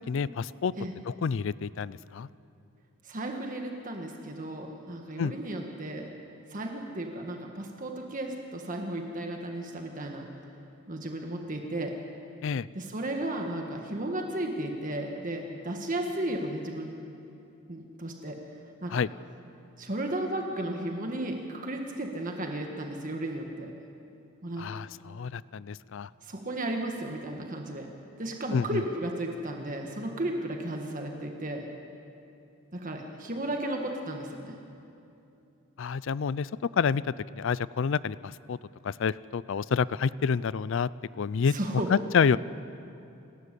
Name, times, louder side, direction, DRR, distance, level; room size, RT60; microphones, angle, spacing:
voice 1, 0.0-0.7 1.1-2.3 5.2-5.3 12.4-12.7 18.9-19.1 24.6-26.1 28.5-28.8 35.8-37.0 37.3-38.6 38.8-40.9 41.2-41.5 41.9-42.4, left 6 dB, 60° left, 19 dB, 0.4 m, -28 dB
voice 2, 3.0-6.1 6.5-10.3 10.9-11.9 12.7-16.9 17.7-18.4 18.8-19.0 19.8-23.7 24.4-24.6 26.2-27.9 28.2-31.7 32.7-34.6 41.5-41.9, right 1 dB, 40° right, 2 dB, 1.6 m, -34 dB
28.5 x 13.0 x 8.3 m, 2.7 s
head